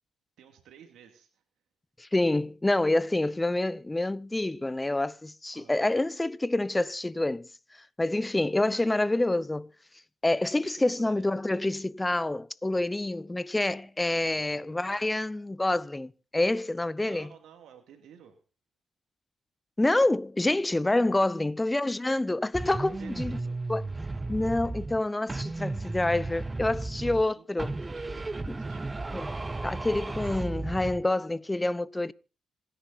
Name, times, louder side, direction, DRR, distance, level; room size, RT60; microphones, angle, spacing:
voice 1, 0.4-1.4 5.5-5.8 10.6-11.3 13.8-15.3 17.1-18.4 21.0-21.4 22.8-23.7 27.0-27.5 27.8-29.1, right 8 dB, 80° right, 2.6 m, -54 dB
voice 2, 2.0-9.7 10.2-17.3 19.8-23.4 23.7-23.8 24.3-27.7 28.5-28.6 29.1-29.2 29.6-32.1, left 2 dB, 15° left, 0.7 m, -27 dB
sound 1, 22.5-25.0 25.3-27.3 27.6-31.0, right 3 dB, 20° right, 0.9 m, -34 dB
26.5 x 10.5 x 4.1 m
cardioid pair, 85°, 0 cm